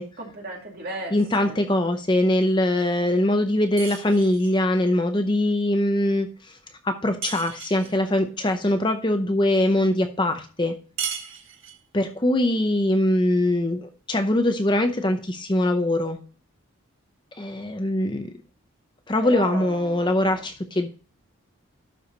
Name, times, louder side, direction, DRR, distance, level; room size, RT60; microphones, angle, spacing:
voice 1, 0.2-1.1 1.4-1.6 19.2-20.5, right 2 dB, 45° right, 0 dB, 2.5 m, -35 dB
voice 2, 1.1-6.3 6.8-10.7 11.9-16.2 17.4-18.3 19.1-20.9, left 1 dB, 20° left, 7 dB, 0.6 m, -22 dB
sound 1, 3.8-4.6 7.2-8.0 11.0-11.9, right 8 dB, 65° right, 1.5 m, -35 dB
12.0 x 4.8 x 4.0 m, 0.38 s
head